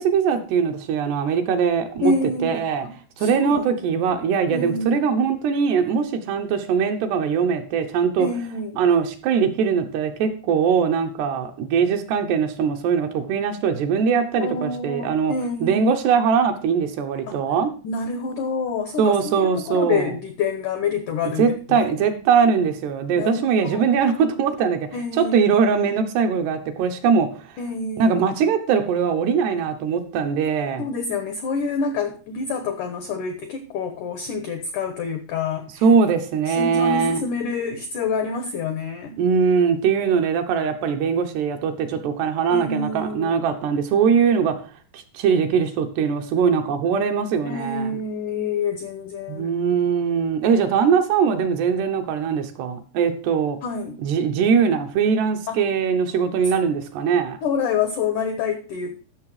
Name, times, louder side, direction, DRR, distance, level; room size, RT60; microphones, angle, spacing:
voice 1, 0.0-2.1 2.4-2.9 3.2-8.3 8.8-15.3 15.6-17.7 19.0-20.1 21.4-24.9 25.1-27.3 28.0-30.8 35.8-37.2 39.2-44.5 44.9-48.0 49.3-53.6 54.0-57.4, right 6 dB, 75° right, 5 dB, 3.0 m, -21 dB
voice 2, 2.0-2.6 3.2-3.6 3.9-4.2 4.5-5.0 8.2-8.8 14.4-15.9 17.3-17.4 17.8-21.4 21.7-21.9 23.1-23.9 24.9-25.3 27.6-28.1 30.8-35.8 36.5-39.2 42.5-43.3 47.4-49.5 53.6-54.0 55.5-55.6 57.4-59.0, left 4 dB, 80° left, 7 dB, 1.8 m, -27 dB
14.0 x 6.7 x 4.9 m, 0.37 s
omnidirectional pair, 5.2 m